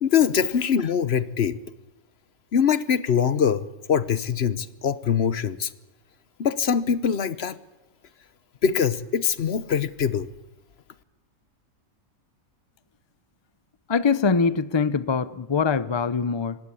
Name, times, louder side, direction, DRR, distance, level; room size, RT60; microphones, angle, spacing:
voice 1, 0.0-1.6 2.5-5.7 6.4-7.6 8.6-10.3, left 7 dB, 50° left, 1.0 m, -23 dB
voice 2, 13.9-16.6, left 5 dB, 35° left, 0.4 m, -23 dB
19.0 x 16.5 x 8.4 m
omnidirectional pair, 1.5 m